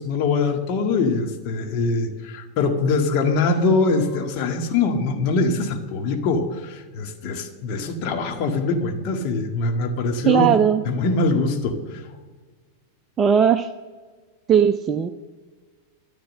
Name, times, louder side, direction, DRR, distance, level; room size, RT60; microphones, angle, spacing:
voice 1, 0.0-10.6 10.9-12.0, left 3 dB, 40° left, 3 dB, 1.8 m, -23 dB
voice 2, 10.3-10.8 13.2-13.7 14.5-15.1, right 8 dB, 25° right, 8 dB, 0.6 m, -17 dB
13.5 x 12.0 x 6.5 m, 1.4 s
figure-of-eight pair, 90°, 0 cm